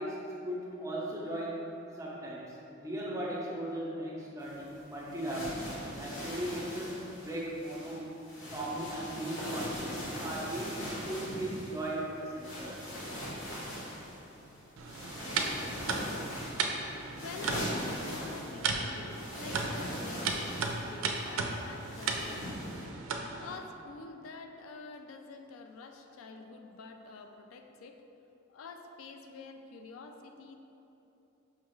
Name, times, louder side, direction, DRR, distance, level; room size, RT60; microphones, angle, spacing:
voice 1, 0.0-8.2 8.5-12.8, right 1 dB, 15° right, -5 dB, 0.5 m, -38 dB
sound 1, 4.4-22.9, equal, 65° left, 0.9 m, -41 dB
sound 2, 14.8-23.6, right 4 dB, 80° right, 0.4 m, -36 dB
voice 2, 16.2-28.0 28.5-30.6, left 4 dB, 80° left, 6 dB, 0.3 m, -48 dB
5.5 x 2.4 x 3.0 m, 2.9 s
head